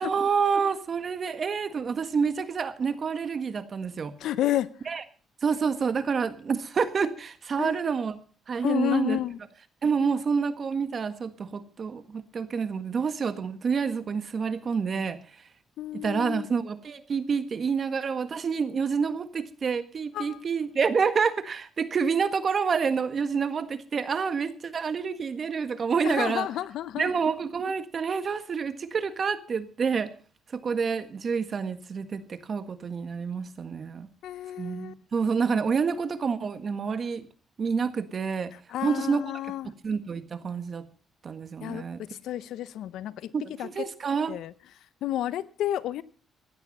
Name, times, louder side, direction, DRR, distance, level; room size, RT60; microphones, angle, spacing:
voice 1, 0.0-4.1 4.9-5.0 5.4-8.2 8.5-9.2 9.8-15.2 15.9-26.5 27.0-30.1 30.5-34.1 34.6-37.3 37.6-38.5 38.8-39.2 39.6-40.9 41.2-42.0 43.3-44.3, right 5 dB, 45° right, 11 dB, 1.6 m, -28 dB
voice 2, 4.2-4.7 7.6-7.9 8.6-9.4 15.8-16.5 20.1-20.4 26.0-27.1 34.2-34.9 38.7-39.7 41.6-43.3 43.6-43.7 44.3-44.5 45.0-46.0, left 12 dB, 80° left, 17 dB, 0.8 m, -31 dB
16.0 x 11.0 x 5.5 m, 0.40 s
cardioid pair, 90°, 0 cm